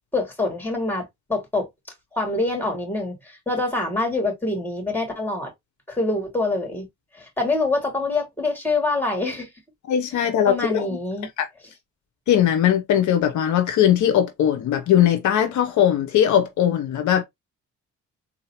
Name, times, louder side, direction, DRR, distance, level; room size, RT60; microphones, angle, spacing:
voice 1, 0.1-1.7 2.1-5.5 5.9-6.8 7.1-9.5 10.5-11.3, left 2 dB, 5° left, 2.6 m, -25 dB
voice 2, 9.9-10.9 11.4-11.5 12.3-17.2, left 10 dB, 75° left, 0.8 m, -19 dB
3.8 x 2.7 x 2.9 m
cardioid pair, 90°, 30 cm